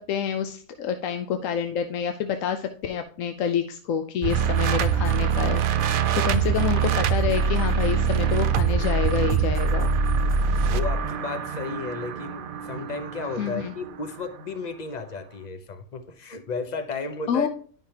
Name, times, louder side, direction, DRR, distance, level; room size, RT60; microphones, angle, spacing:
voice 1, 0.0-9.9 13.4-13.7 17.3-17.5, left 8 dB, 70° left, 7 dB, 1.0 m, -28 dB
sound 1, 4.2-14.2, right 6 dB, 85° right, 0.4 m, -24 dB
voice 2, 10.6-17.5, left 4 dB, 40° left, 9 dB, 0.7 m, -33 dB
10.5 x 5.7 x 2.8 m, 0.43 s
omnidirectional pair, 1.5 m